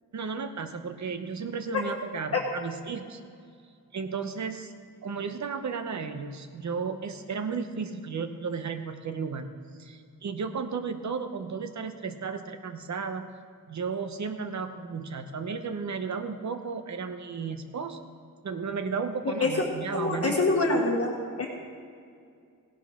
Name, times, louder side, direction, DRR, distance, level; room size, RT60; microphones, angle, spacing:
voice 1, 0.1-3.2 3.9-4.7 5.0-9.5 9.8-13.3 13.7-18.0 18.4-20.8, right 5 dB, 60° right, 8 dB, 0.9 m, -34 dB
voice 2, 19.9-21.5, left 2 dB, 45° left, -1 dB, 1.3 m, -25 dB
16.5 x 11.0 x 3.7 m, 2.3 s
wide cardioid pair, 150°, 33 cm